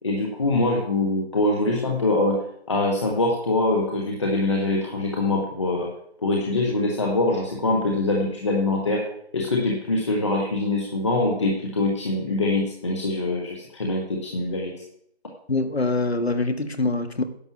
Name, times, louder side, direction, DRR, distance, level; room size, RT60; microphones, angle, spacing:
voice 1, 0.0-2.4 2.7-5.9 6.2-9.1 9.3-14.7, left 2 dB, 25° left, 1.3 m, -24 dB
voice 2, 15.5-17.2, left 3 dB, 70° left, 1.7 m, -24 dB
11.0 x 6.8 x 7.0 m
figure-of-eight pair, 160°, 32 cm